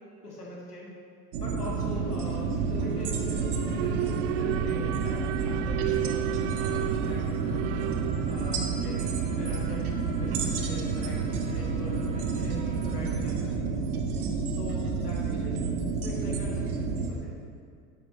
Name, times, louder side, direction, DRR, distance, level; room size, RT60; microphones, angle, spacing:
voice 1, 0.2-0.9 1.3-7.9 8.3-9.8 10.1-14.0 14.5-17.3, left 1 dB, 90° left, -3 dB, 1.9 m, -42 dB
sound 1, 1.3-17.1, right 4 dB, 70° right, 1.1 m, -30 dB
Alarm, 1.9-14.0, right 14 dB, 55° right, 0.5 m, -36 dB
sound 2, 4.5-13.1, right 2 dB, 15° right, 1.4 m, -50 dB
11.5 x 7.9 x 3.2 m, 2.1 s
figure-of-eight pair, 75°, 46 cm